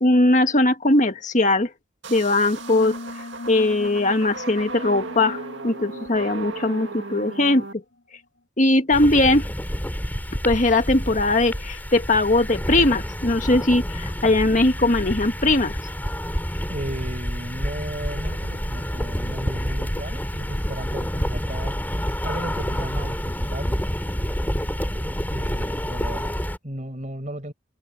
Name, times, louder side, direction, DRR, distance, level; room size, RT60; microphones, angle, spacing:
voice 1, 0.0-1.7 2.1-2.9 3.5-7.8 8.6-9.5 10.4-15.8, left 2 dB, 40° left, 1.7 m, -20 dB
sound 1, 2.0-7.7, right 3 dB, 65° right, 2.3 m, -36 dB
sound 2, 2.6-7.8, left 2 dB, 65° left, 2.3 m, -39 dB
sound 3, 8.9-26.6, equal, 10° left, 5.6 m, -28 dB
voice 2, 16.7-21.8 22.2-23.8 25.3-27.5, right 1 dB, 35° right, 5.5 m, -35 dB
head